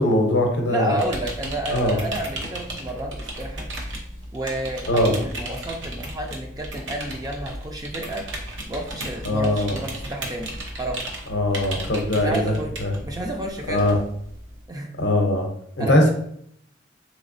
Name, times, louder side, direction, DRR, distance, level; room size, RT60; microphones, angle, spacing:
voice 1, 0.0-1.0 1.7-2.0 4.9-5.1 9.2-9.8 11.3-12.5 12.8-12.9 13.7-14.0 15.0-15.5 15.8-16.1, left 1 dB, 65° left, 3 dB, 0.7 m, -20 dB
voice 2, 0.7-3.7 4.3-8.2 8.7-11.0 12.1-12.7 13.0-14.0 14.7-14.9 15.8-16.1, right 1 dB, 20° right, 2 dB, 0.4 m, -31 dB
sound 1, 1.0-14.7, right 1 dB, 85° right, 0.7 m, -35 dB
3.4 x 3.1 x 2.5 m, 0.69 s
head